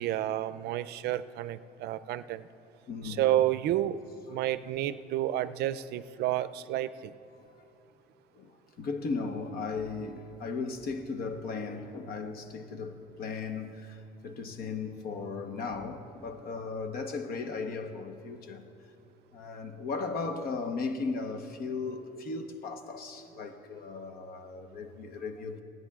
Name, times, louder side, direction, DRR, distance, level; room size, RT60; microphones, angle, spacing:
voice 1, 0.0-2.5 3.0-4.0 4.3-7.1, right 13 dB, 75° right, 0.4 m, -30 dB
voice 2, 2.9-3.3 5.3-5.4 8.3-18.7 19.3-25.6, left 4 dB, 65° left, 1.0 m, -36 dB
28.5 x 9.6 x 2.4 m
cardioid pair, 110°, 17 cm